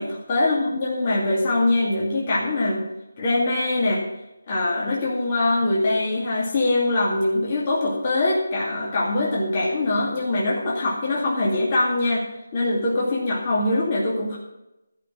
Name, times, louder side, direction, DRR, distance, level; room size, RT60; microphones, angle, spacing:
voice 1, 0.3-2.8 3.2-4.0 4.5-12.3 12.5-14.4, left 2 dB, 25° left, -5 dB, 2.3 m, -23 dB
13.0 x 5.8 x 8.5 m, 0.92 s
figure-of-eight pair, 170°, 0 cm